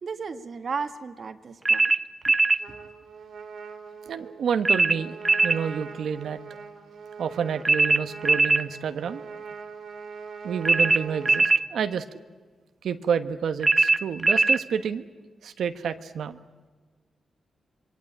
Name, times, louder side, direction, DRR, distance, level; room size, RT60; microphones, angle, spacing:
voice 1, 0.0-1.8 2.3-2.4 2.7-2.8, right 5 dB, 50° right, 8 dB, 1.7 m, -34 dB
sound 1, 1.7-2.6 4.6-5.6 7.6-8.7 10.6-11.7 13.6-14.6, right 3 dB, 25° right, 0.8 m, -20 dB
Trumpet, 2.6-11.5, right 5 dB, 65° right, 2.8 m, -42 dB
voice 2, 4.1-5.2 5.4-6.4 7.2-9.2 10.4-12.0 12.8-15.0 15.4-16.4, right 7 dB, 85° right, 9 dB, 1.1 m, -29 dB
26.5 x 23.5 x 8.7 m, 1.4 s
wide cardioid pair, 140°, 0 cm